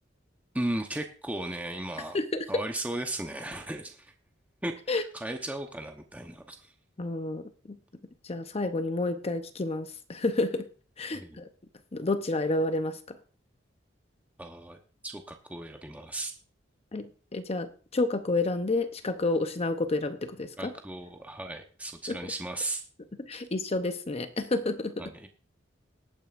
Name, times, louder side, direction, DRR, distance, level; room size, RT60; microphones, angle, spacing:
voice 1, 0.5-2.2 2.5-4.1 4.6-6.7 11.1-11.4 14.4-14.8 15.0-16.3 20.6-22.8 25.0-25.3, right 1 dB, 10° right, 4 dB, 0.9 m, -36 dB
voice 2, 2.1-2.6 4.9-5.0 7.0-7.8 8.2-10.7 11.0-11.5 11.9-13.0 16.9-20.7 22.1-22.2 23.2-25.0, left 2 dB, 35° left, 9 dB, 0.7 m, -30 dB
19.5 x 9.0 x 2.5 m, 0.38 s
head